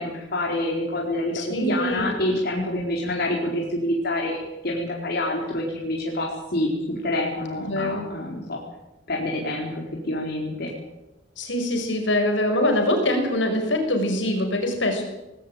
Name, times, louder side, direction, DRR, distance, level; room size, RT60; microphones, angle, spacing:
voice 1, 0.0-4.4 4.6-8.6 9.1-10.7, left 1 dB, 60° left, -2 dB, 4.5 m, -27 dB
voice 2, 1.3-2.1 7.7-8.1 11.4-15.0, left 1 dB, 75° left, 4 dB, 5.8 m, -23 dB
20.0 x 17.5 x 9.0 m, 0.97 s
head